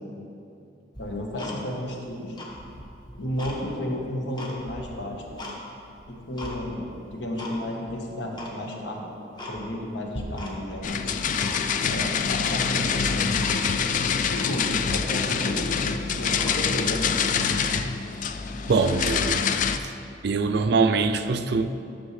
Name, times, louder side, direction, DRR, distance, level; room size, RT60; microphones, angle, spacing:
Tick-tock, 0.9-2.0 2.3-3.6 4.0-5.6 6.0-6.6 7.0-7.6 7.8-7.9 8.3-8.6 9.0-9.1 9.4-9.9 10.1-10.8 11.1-11.9 12.4-12.9 13.4-13.6 13.9-14.0 14.4-14.6 15.1-15.2 15.4-16.9 17.3-17.6, left 1 dB, 25° left, 1.0 m, -39 dB
voice 1, 1.0-2.3 3.2-5.4 6.1-9.2 9.5-11.0 11.8-13.3 14.3-15.7 16.1-17.3, left 1 dB, 70° left, 1.2 m, -32 dB
sound 1, 10.8-19.8, left 6 dB, 45° left, 0.3 m, -25 dB
voice 2, 18.7-19.4 20.2-21.7, right 4 dB, 60° right, 0.4 m, -23 dB
11.5 x 6.3 x 3.2 m
head